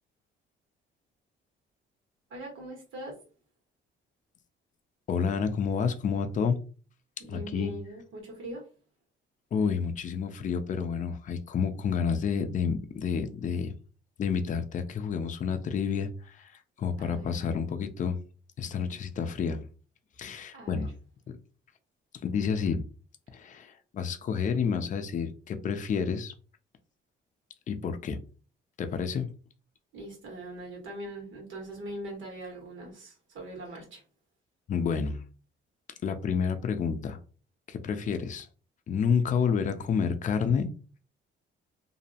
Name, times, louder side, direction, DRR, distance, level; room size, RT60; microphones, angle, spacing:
voice 1, 2.3-3.2 7.2-8.7 17.0-17.6 20.5-20.9 29.9-34.0, right 1 dB, 75° right, 1 dB, 1.3 m, -41 dB
voice 2, 5.1-6.6 7.3-7.7 9.5-13.7 14.2-18.2 18.6-19.7 20.2-20.9 21.3-21.4 22.2-22.8 23.3-26.3 27.7-28.2 28.8-29.3 34.7-35.2 36.0-37.2 37.7-38.5 38.9-40.7, left 6 dB, 40° left, 8 dB, 0.4 m, -29 dB
2.6 x 2.0 x 2.7 m, 0.38 s
cardioid pair, 90°, 20 cm